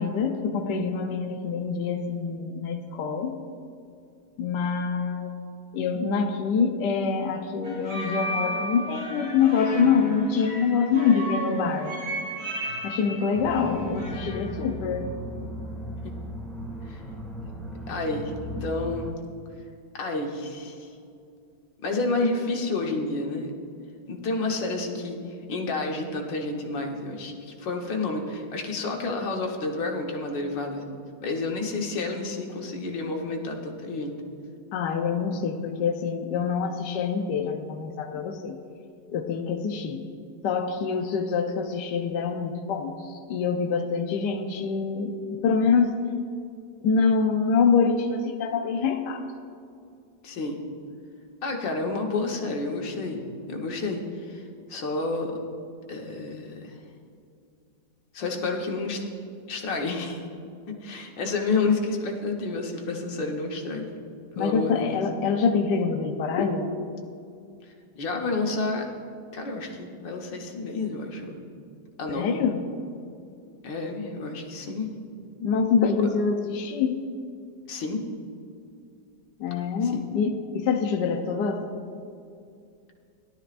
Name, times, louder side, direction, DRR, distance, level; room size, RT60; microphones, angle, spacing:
voice 1, 0.0-3.4 4.4-5.3 5.7-11.9 12.8-15.1 34.7-38.6 39.1-40.1 40.4-46.1 46.8-49.3 64.4-66.7 72.1-72.6 75.4-77.0 79.4-81.7, left 5 dB, 75° left, 4 dB, 1.3 m, -25 dB
sound 1, 7.6-14.6, right 1 dB, 35° right, 1.9 m, -34 dB
sound 2, 13.3-19.1, equal, ahead, 1.3 m, -36 dB
voice 2, 17.9-18.3 18.6-19.2 20.0-20.9 21.8-23.5 24.1-25.2 25.5-30.8 31.2-34.1 50.2-50.6 51.4-55.4 55.9-56.8 58.1-59.0 59.5-60.2 60.7-63.9 64.4-65.0 68.0-68.9 69.3-71.5 72.0-72.4 73.6-75.0 77.7-78.0 79.8-80.1, left 3 dB, 90° left, 1 dB, 2.0 m, -30 dB
17.5 x 12.0 x 2.5 m, 2.4 s
omnidirectional pair, 1.9 m